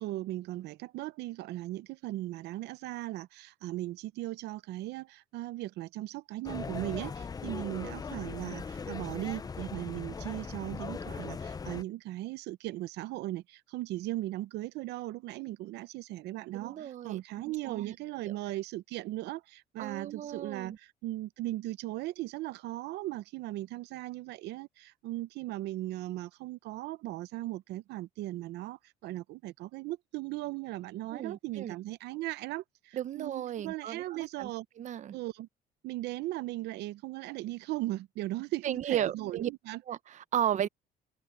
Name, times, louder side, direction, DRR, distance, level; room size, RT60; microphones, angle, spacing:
voice 1, 0.0-34.7 35.1-35.5 35.8-39.8, right 16 dB, 80° right, 0.7 m, -38 dB
sound 1, 6.4-11.8, left 5 dB, 20° left, 0.5 m, -39 dB
voice 2, 16.5-17.2 17.6-17.9 18.2-18.3 19.8-20.8 31.1-31.7 32.9-34.5 34.8-35.1 38.6-39.5 39.9-40.7, right 10 dB, 45° right, 0.7 m, -34 dB
open air
cardioid pair, 110°, 17 cm